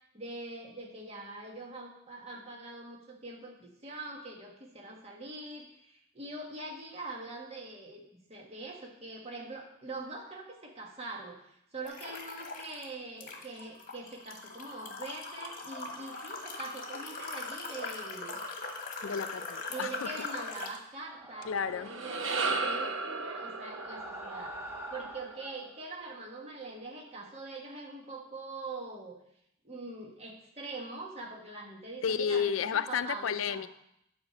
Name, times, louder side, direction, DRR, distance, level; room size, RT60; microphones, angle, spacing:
voice 1, 0.1-18.4 19.7-22.2 22.6-29.2 29.6-32.5 32.9-33.7, right 3 dB, 30° right, 0 dB, 1.5 m, -43 dB
sound 1, 11.8-12.8 13.2-20.8, left 3 dB, 45° left, 1.4 m, -40 dB
voice 2, 19.0-20.1 21.4-21.9 32.0-33.7, left 7 dB, 80° left, 13 dB, 0.4 m, -31 dB
sound 2, 21.0-22.2 23.4-25.6, right 1 dB, 10° right, 1.2 m, -45 dB
sound 3, 21.6-26.1, right 3 dB, 75° right, 0.9 m, -35 dB
10.5 x 5.1 x 6.9 m, 0.77 s
head